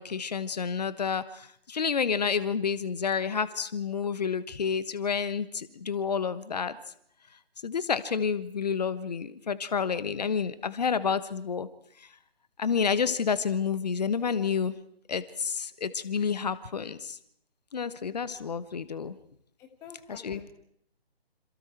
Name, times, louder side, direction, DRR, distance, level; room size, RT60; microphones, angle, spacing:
voice 1, 0.0-6.8 7.6-11.7 12.6-14.8 15.1-17.2 17.7-19.2 20.1-20.4, left 6 dB, 40° left, 15 dB, 1.2 m, -29 dB
voice 2, 19.6-20.5, left 7 dB, 10° left, 7 dB, 1.1 m, -48 dB
27.5 x 27.5 x 4.6 m, 0.68 s
figure-of-eight pair, 145°, 32 cm